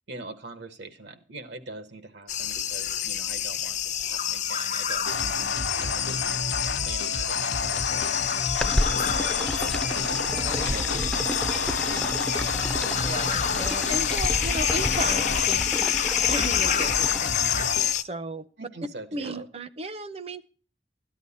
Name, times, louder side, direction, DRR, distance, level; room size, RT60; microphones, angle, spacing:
voice 1, 0.1-8.6 9.0-10.3 10.6-13.1 18.6-19.5, right 2 dB, 80° right, 10 dB, 1.4 m, -43 dB
sound 1, 2.3-18.0, left 10 dB, 45° left, 0.6 m, -28 dB
sound 2, 5.1-17.9, left 3 dB, 70° left, 0.8 m, -31 dB
sound 3, 8.6-17.2, left 1 dB, 5° left, 0.5 m, -32 dB
voice 2, 10.3-10.7 13.0-18.7 19.1-20.4, right 2 dB, 35° right, 14 dB, 0.7 m, -35 dB
13.5 x 10.5 x 4.2 m, 0.38 s
head